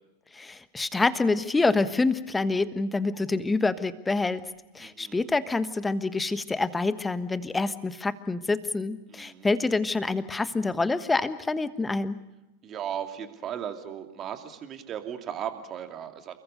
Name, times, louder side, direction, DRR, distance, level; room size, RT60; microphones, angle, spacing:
voice 1, 0.3-4.4 4.7-12.2, left 3 dB, 10° left, 14 dB, 1.3 m, -27 dB
voice 2, 4.8-5.2 9.1-9.5 12.6-16.4, right 9 dB, 30° right, 6 dB, 2.6 m, -36 dB
30.0 x 21.5 x 6.7 m, 1.0 s
figure-of-eight pair, 90°, 0 cm